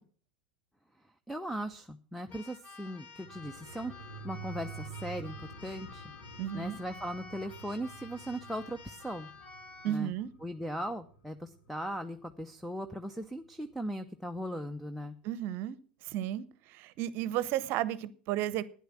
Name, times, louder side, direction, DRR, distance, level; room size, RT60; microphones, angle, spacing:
voice 1, 1.3-3.9 4.2-6.0 6.5-9.3 9.8-10.1 10.4-15.2, equal, ahead, 0.7 m, -38 dB
Keyboard (musical), 2.3-10.0, left 4 dB, 30° left, 1.9 m, -51 dB
sound 1, 3.2-12.3 12.6-12.7, right 5 dB, 65° left, 2.1 m, -49 dB
voice 2, 6.4-6.8 9.8-10.3 15.2-15.8 16.1-16.5 16.7-18.6, right 12 dB, 45° right, 0.9 m, -33 dB
11.5 x 9.9 x 6.1 m
figure-of-eight pair, 85°, 5 cm